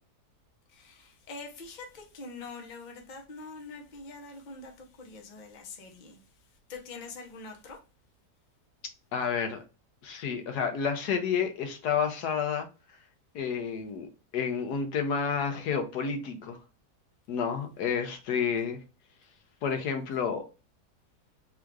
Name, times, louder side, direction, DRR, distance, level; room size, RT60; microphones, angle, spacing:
voice 1, 0.7-4.7 5.0-6.2 6.7-7.8, left 3 dB, 35° left, 0.8 m, -44 dB
voice 2, 9.1-9.6 10.0-12.7 13.3-14.1 14.3-16.6 17.3-18.8 19.6-20.4, left 6 dB, 80° left, 1.2 m, -30 dB
3.6 x 2.4 x 4.5 m
omnidirectional pair, 1.7 m